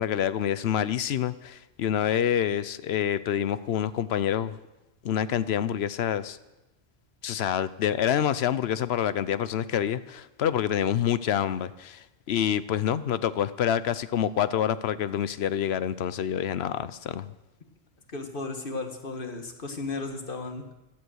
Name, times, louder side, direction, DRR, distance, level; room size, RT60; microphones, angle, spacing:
voice 1, 0.0-4.6 5.0-6.4 7.2-17.3, left 9 dB, 70° left, 15 dB, 0.9 m, -27 dB
voice 2, 18.1-20.7, left 3 dB, 50° left, 5 dB, 1.7 m, -35 dB
15.0 x 12.5 x 6.3 m, 1.0 s
omnidirectional pair, 1.1 m